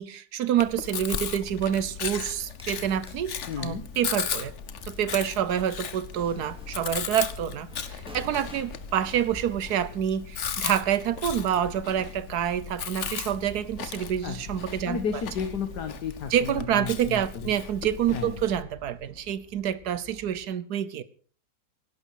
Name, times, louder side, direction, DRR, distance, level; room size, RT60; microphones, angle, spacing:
voice 1, 0.0-4.5 4.9-15.0 16.3-21.0, right 10 dB, 75° right, 1.4 m, -27 dB
Chewing mastication, 0.6-18.6, left 7 dB, 50° left, 1.2 m, -36 dB
sound 1, 2.1-2.8 3.1-20.5, right 1 dB, 5° right, 4.2 m, -51 dB
voice 2, 3.5-3.9 14.2-14.5 14.9-17.5 18.1-18.4, left 6 dB, 85° left, 1.9 m, -33 dB
16.5 x 12.0 x 4.8 m
omnidirectional pair, 1.7 m